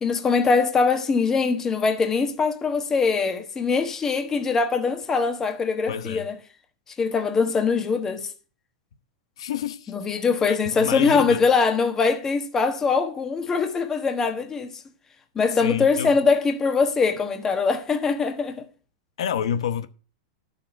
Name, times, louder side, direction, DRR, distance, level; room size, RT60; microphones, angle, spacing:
voice 1, 0.0-6.4 7.0-8.3 9.9-14.8 15.3-18.6, left 4 dB, 15° left, 1.2 m, -22 dB
voice 2, 5.9-6.3 9.4-9.9 10.5-11.4 15.6-16.2 19.2-19.9, left 8 dB, 80° left, 1.0 m, -28 dB
10.5 x 6.8 x 5.8 m
supercardioid pair, 150°, 3 cm